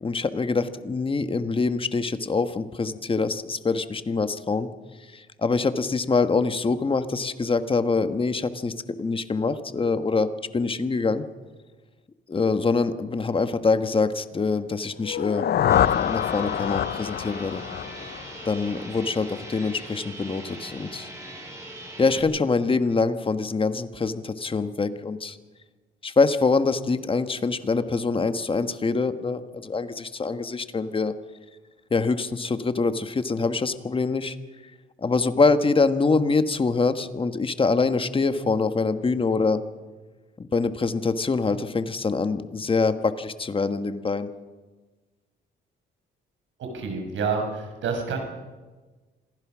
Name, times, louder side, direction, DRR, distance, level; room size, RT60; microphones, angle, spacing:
voice 1, 0.0-4.7 5.1-8.7 9.0-11.2 12.3-15.5 16.0-17.6 18.4-21.1 22.0-25.4 26.0-31.1 31.9-34.4 35.0-39.6 40.4-44.3, left 4 dB, 25° left, 10 dB, 1.4 m, -24 dB
sound 1, 15.0-19.0, left 10 dB, 55° left, 0.6 m, -26 dB
sound 2, 15.7-22.2, right 1 dB, 15° right, 6.5 m, -41 dB
voice 2, 46.6-48.2, right 5 dB, 75° right, 4 dB, 5.9 m, -28 dB
26.5 x 15.5 x 6.2 m, 1.3 s
cardioid pair, 90°, 20 cm